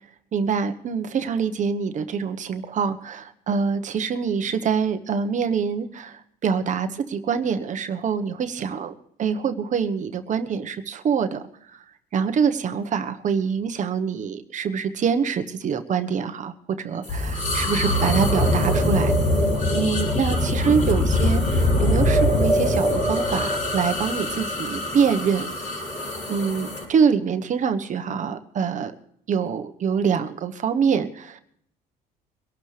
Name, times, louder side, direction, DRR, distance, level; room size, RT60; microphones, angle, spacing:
voice 1, 0.3-8.9 9.2-11.4 12.1-19.1 19.7-25.5 26.3-28.9 29.3-31.4, right 6 dB, 45° right, 8 dB, 1.2 m, -25 dB
sound 1, 17.0-26.8, left 1 dB, 50° left, 6.3 m, -23 dB
23.5 x 12.0 x 3.4 m, 0.67 s
cardioid pair, 110°, 17 cm